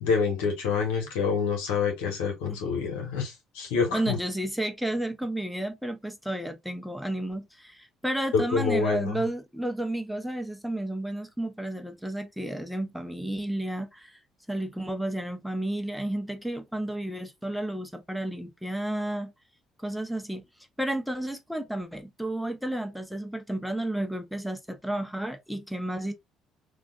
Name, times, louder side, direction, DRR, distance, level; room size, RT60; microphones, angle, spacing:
voice 1, 0.0-4.2 8.3-9.1, left 5 dB, 85° left, 1.2 m, -27 dB
voice 2, 3.9-14.2 14.5-19.3 19.8-20.4 20.8-26.1, right 1 dB, ahead, 0.6 m, -32 dB
3.5 x 2.4 x 2.4 m
supercardioid pair, 65°, 0 cm